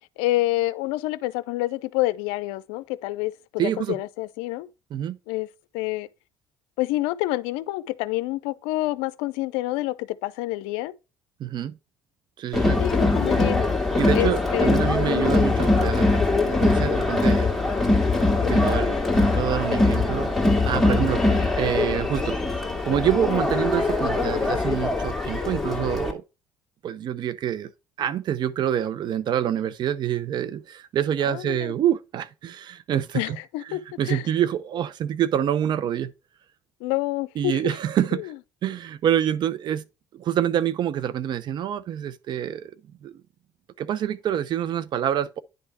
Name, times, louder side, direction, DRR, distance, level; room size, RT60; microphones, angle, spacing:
voice 1, 0.2-4.7 5.3-5.5 5.7-6.1 6.8-10.9 12.8-13.6 14.1-15.3 21.3-21.5 31.3-31.7 33.1-33.8 34.1-34.2 36.8-37.6 38.1-38.2, left 17 dB, 80° left, 0.5 m, -28 dB
voice 2, 3.6-4.0 4.9-5.2 11.4-11.7 12.4-12.8 14.0-17.5 18.4-20.3 20.6-22.4 22.9-26.2 26.8-27.7 28.0-33.4 33.7-36.1 37.4-38.3 38.6-39.8 40.1-42.7 43.0-43.1 43.8-45.4, right 10 dB, 55° right, 0.6 m, -26 dB
Crowd, 12.5-26.1, left 2 dB, ahead, 2.1 m, -22 dB
9.7 x 3.4 x 4.7 m
supercardioid pair, 70°, 9 cm